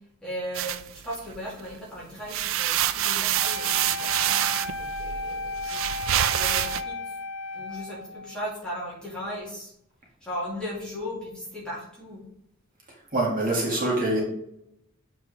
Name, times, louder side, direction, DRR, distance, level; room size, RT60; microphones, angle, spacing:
voice 1, 0.2-5.8 6.3-7.0 7.5-9.7 10.2-12.2, equal, 5° left, -7 dB, 2.0 m, -37 dB
sound 1, 0.6-1.7 2.1-6.8, right 11 dB, 60° right, 0.3 m, -26 dB
Wind instrument woodwind instrument, 3.4-8.5, left 3 dB, 75° left, 0.8 m, -34 dB
voice 2, 13.1-14.2, right 2 dB, 40° right, -3 dB, 2.0 m, -24 dB
7.6 x 4.5 x 3.4 m, 0.76 s
head